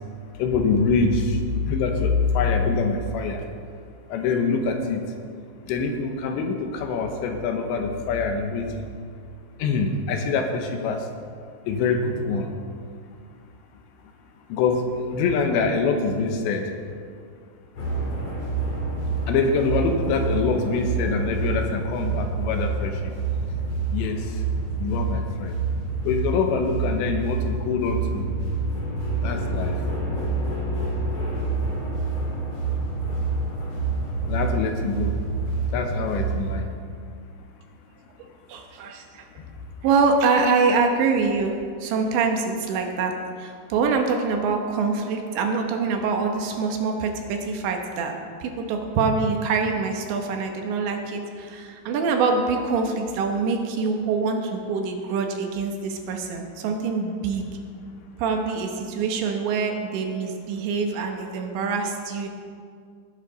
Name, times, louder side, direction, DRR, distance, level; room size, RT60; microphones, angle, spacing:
voice 1, 0.4-1.2 1.5-3.4 4.1-5.0 5.7-8.9 9.6-11.0 11.7-12.5 14.5-16.7 19.3-22.9 23.9-24.2 24.8-25.5 26.1-28.2 29.2-29.7 34.3-35.1 35.7-36.6, left 4 dB, 75° left, 4 dB, 3.1 m, -24 dB
sound 1, 17.8-36.6, right 3 dB, 40° left, 2.8 m, -27 dB
voice 2, 38.5-39.3 39.8-41.5 41.8-43.1 43.4-48.1 48.4-57.4 58.2-62.3, right 4 dB, 75° right, 3 dB, 3.2 m, -25 dB
18.5 x 9.0 x 3.9 m, 2.2 s
omnidirectional pair, 5.4 m